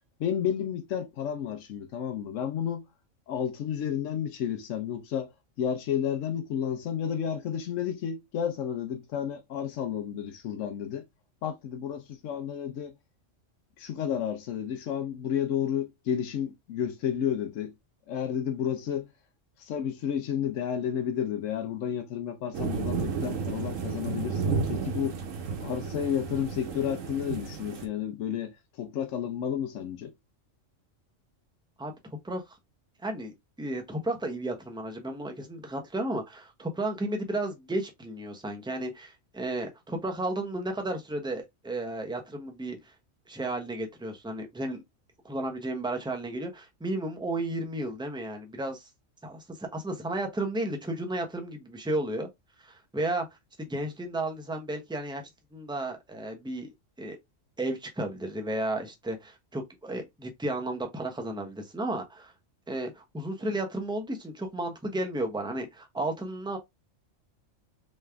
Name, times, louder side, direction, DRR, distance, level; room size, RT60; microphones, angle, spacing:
voice 1, 0.2-2.9 3.3-11.1 11.4-12.9 13.8-17.7 18.1-19.1 19.6-25.2 25.6-30.1, left 9 dB, 75° left, 1.0 m, -31 dB
sound 1, 22.5-27.9, right 5 dB, 85° right, 1.3 m, -32 dB
voice 2, 32.2-32.6 33.0-42.9 43.3-44.8 45.2-48.9 49.2-52.3 52.6-53.3 53.6-56.7 57.0-57.2 57.6-62.3 62.7-66.6, right 1 dB, 5° right, 0.6 m, -33 dB
3.5 x 3.2 x 3.4 m
omnidirectional pair, 1.3 m